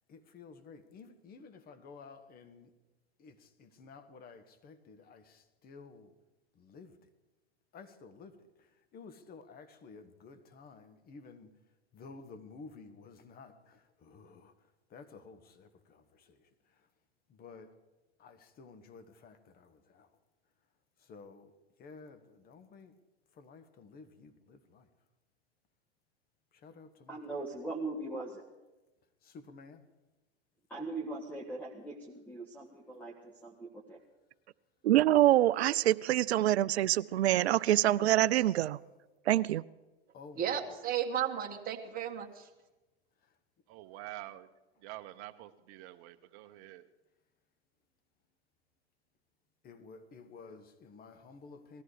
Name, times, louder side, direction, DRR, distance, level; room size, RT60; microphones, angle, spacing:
voice 1, 0.1-2.7 3.2-6.1 6.5-7.1 7.7-11.5 11.9-14.5 14.9-16.9 17.3-17.7 18.2-20.1 21.0-21.5 21.8-22.9 23.3-24.9 26.5-27.4 29.2-29.8 40.1-40.6 43.2-43.3 49.6-51.8, left 4 dB, 30° left, 1.5 m, -53 dB
voice 2, 27.1-28.4 30.7-34.0, right 2 dB, 5° left, 1.6 m, -40 dB
voice 3, 34.8-38.8 39.3-39.6, right 14 dB, 75° right, 0.5 m, -25 dB
voice 4, 40.4-42.5, right 9 dB, 25° right, 1.9 m, -34 dB
voice 5, 43.7-44.4 44.8-46.9, right 15 dB, 40° right, 1.0 m, -47 dB
19.5 x 14.0 x 4.9 m
hypercardioid pair, 115°, 33 cm